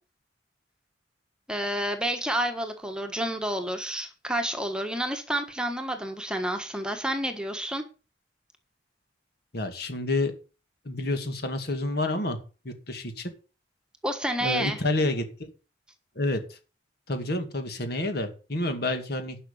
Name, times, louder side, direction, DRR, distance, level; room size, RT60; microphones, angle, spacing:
voice 1, 1.5-7.8 14.0-14.8, right 1 dB, 5° right, 5 dB, 1.4 m, -29 dB
voice 2, 9.5-10.3 10.9-12.4 12.6-13.3 14.4-15.5 16.2-16.6 17.1-19.4, left 2 dB, 60° left, 7 dB, 2.2 m, -29 dB
11.5 x 6.0 x 7.2 m, 0.35 s
head